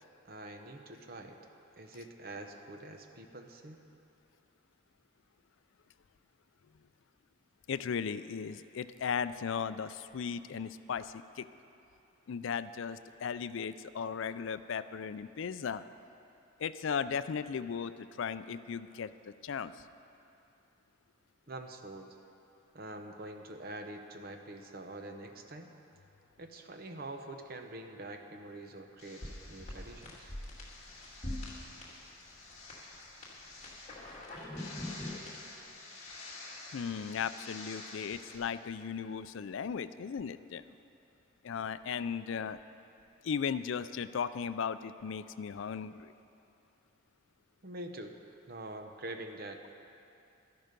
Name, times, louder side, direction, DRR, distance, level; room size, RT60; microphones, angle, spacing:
voice 1, 0.2-1.4 1.8-3.8 21.5-22.2 22.7-25.7 26.4-30.3 47.6-48.1 48.5-49.7, right 2 dB, 45° right, 5 dB, 0.8 m, -45 dB
voice 2, 7.7-11.5 12.3-15.8 16.6-19.7 36.7-40.6 41.4-42.6 43.2-46.1, left 6 dB, 65° left, 13 dB, 0.4 m, -36 dB
sound 1, 29.0-38.4, left 1 dB, 30° left, 2.1 m, -45 dB
12.5 x 11.0 x 5.2 m, 2.7 s
head